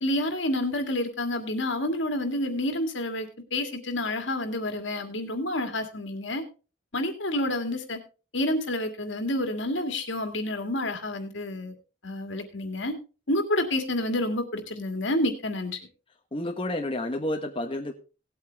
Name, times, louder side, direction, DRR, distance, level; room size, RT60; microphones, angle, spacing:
voice 1, 0.0-6.4 6.9-8.0 8.3-11.8 12.0-13.0 13.3-15.8, left 1 dB, 70° left, 7 dB, 2.2 m, -29 dB
voice 2, 16.3-17.9, left 1 dB, 30° left, 3 dB, 1.1 m, -30 dB
18.0 x 8.5 x 3.4 m, 0.33 s
head